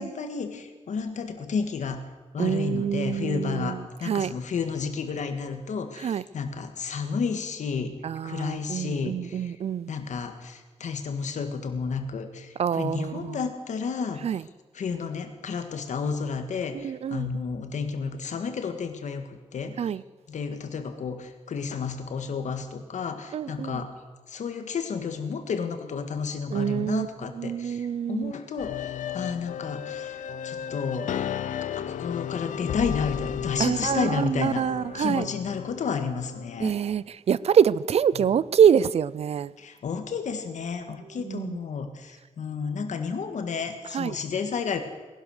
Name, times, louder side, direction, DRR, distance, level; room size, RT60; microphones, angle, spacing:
voice 1, 0.0-2.0 2.3-8.0 8.2-9.5 9.9-14.4 14.7-19.8 20.3-23.9 24.3-30.2 30.4-31.2 31.8-34.7 34.9-36.7 38.1-38.3 39.6-44.8, left 5 dB, 70° left, 1.6 m, -31 dB
voice 2, 2.4-3.8 4.1-4.3 6.0-6.2 8.0-9.9 12.6-13.4 14.2-14.4 16.8-17.3 19.8-20.0 23.3-23.8 26.5-27.1 27.4-28.3 33.6-35.3 36.6-39.5 41.3-41.6 43.9-44.1, right 8 dB, 55° right, 0.4 m, -25 dB
sound 1, 28.6-36.6, left 9 dB, 90° left, 0.6 m, -34 dB
19.0 x 11.0 x 6.5 m
wide cardioid pair, 130°, 13 cm